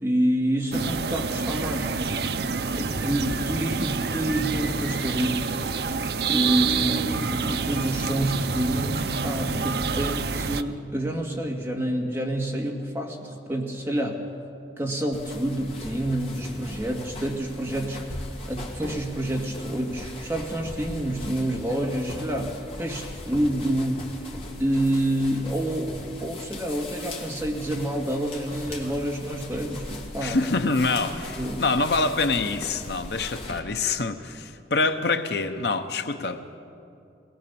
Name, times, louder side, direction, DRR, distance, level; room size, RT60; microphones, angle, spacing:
voice 1, 0.0-2.0 2.8-5.5 5.8-6.0 6.3-14.2 14.8-18.1 18.5-24.3 24.6-30.4 31.3-31.6, right 1 dB, 15° right, -1 dB, 2.1 m, -28 dB
sound 1, 0.7-10.6, right 5 dB, 65° right, 0.6 m, -28 dB
sound 2, 15.1-33.6, left 1 dB, 35° left, 2.2 m, -39 dB
voice 2, 30.2-36.4, left 3 dB, 70° left, 8 dB, 0.9 m, -25 dB
22.0 x 18.5 x 7.1 m, 2.5 s
head